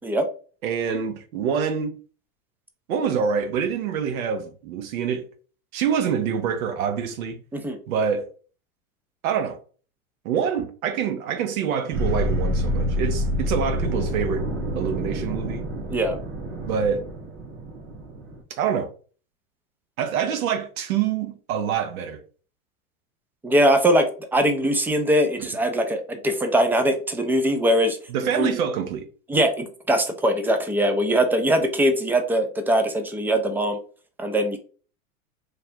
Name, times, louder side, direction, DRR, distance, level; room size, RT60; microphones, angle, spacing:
voice 1, 0.6-1.9 2.9-5.2 5.7-7.4 7.9-8.3 9.2-9.6 10.2-14.4 14.7-15.6 16.6-17.1 18.6-18.9 20.0-22.2 28.1-29.1, right 7 dB, 75° right, 1.0 m, -26 dB
sound 1, 11.9-18.4, equal, 30° right, 1.2 m, -27 dB
voice 2, 23.4-28.0 28.4-28.6 29.3-33.8 34.2-34.6, right 1 dB, 5° right, 0.3 m, -21 dB
3.2 x 2.6 x 4.3 m
hypercardioid pair, 105°, 43 cm